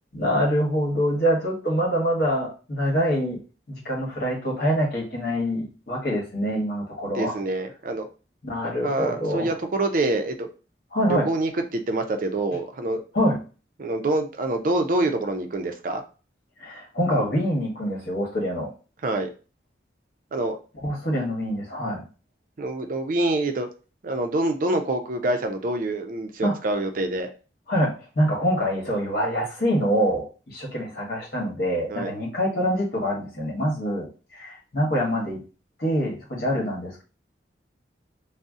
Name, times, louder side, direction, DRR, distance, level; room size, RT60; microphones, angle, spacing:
voice 1, 0.1-3.4 3.7-7.4 8.4-9.5 10.9-11.3 13.1-13.4 16.6-18.7 20.8-22.0 26.4-26.6 27.7-34.1 34.3-35.4 35.8-37.0, equal, 55° left, -2 dB, 1.1 m, -25 dB
voice 2, 7.1-8.1 8.8-10.5 11.1-13.0 13.8-16.0 19.0-19.3 20.3-20.6 22.6-23.7 24.0-27.3 31.9-32.1, right 2 dB, 45° right, 6 dB, 0.4 m, -26 dB
2.6 x 2.0 x 3.5 m, 0.35 s
head